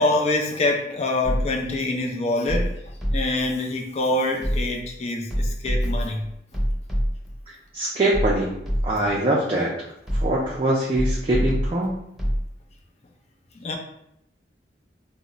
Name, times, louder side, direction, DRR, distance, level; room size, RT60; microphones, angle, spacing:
voice 1, 0.0-2.7 3.1-6.3 13.6-13.8, left 2 dB, 35° left, 1 dB, 0.4 m, -25 dB
sound 1, 1.2-1.8 2.5-3.5 4.4-4.9 5.3-7.4 8.1-9.2 10.1-10.6 11.0-12.5, equal, ahead, 0.7 m, -26 dB
voice 2, 7.5-8.5 8.8-9.7 10.1-11.9, right 1 dB, 30° right, -4 dB, 0.4 m, -23 dB
2.2 x 2.0 x 3.8 m, 0.78 s
head